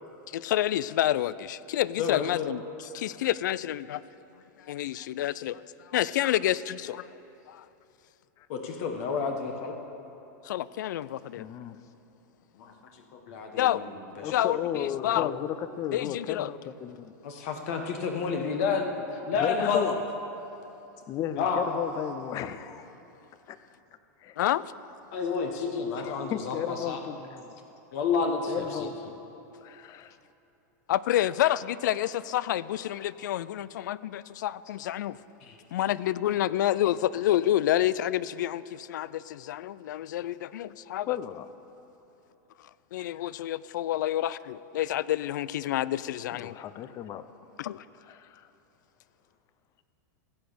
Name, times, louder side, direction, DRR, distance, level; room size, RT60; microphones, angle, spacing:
voice 1, 0.3-4.1 4.6-7.1 7.5-7.7 10.4-11.5 13.6-13.8 14.3-15.3 15.9-16.5 19.6-19.7 24.4-24.7 30.9-35.2 35.7-41.2 42.6-46.5 47.6-47.8, left 13 dB, 80° left, 19 dB, 0.4 m, -29 dB
voice 2, 2.0-2.5 8.5-9.8 12.6-12.7 13.1-13.9 14.2-14.3 14.9-15.4 17.2-19.9 21.4-21.6 25.1-27.0 27.9-28.9 35.4-35.6, left 5 dB, 55° left, 4 dB, 1.3 m, -30 dB
voice 3, 11.4-11.8 14.2-17.1 19.4-20.0 21.1-22.9 23.5-23.6 24.2-24.4 26.0-27.5 28.5-29.2 29.6-30.2 41.1-41.5 43.1-43.2 46.3-47.2 48.1-48.5, left 10 dB, 35° left, 13 dB, 0.6 m, -34 dB
15.0 x 8.0 x 6.9 m, 3.0 s
supercardioid pair, 135°, 10 cm